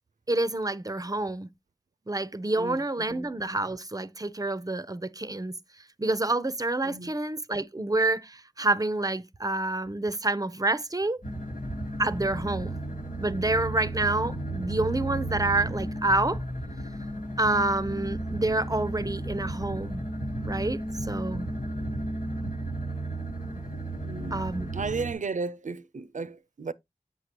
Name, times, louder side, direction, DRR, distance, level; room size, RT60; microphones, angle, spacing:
voice 1, 0.3-1.5 2.1-5.5 6.0-11.2 12.0-12.8 13.2-16.4 17.4-20.0 20.4-21.5 24.3-24.7, right 2 dB, 25° right, 0.6 m, -28 dB
voice 2, 2.6-3.2 6.8-7.1 24.0-24.4 24.7-26.7, right 4 dB, 65° right, 0.5 m, -34 dB
sound 1, 11.2-25.1, right 1 dB, 80° left, 1.4 m, -34 dB
8.1 x 5.6 x 2.9 m
wide cardioid pair, 45°, 14 cm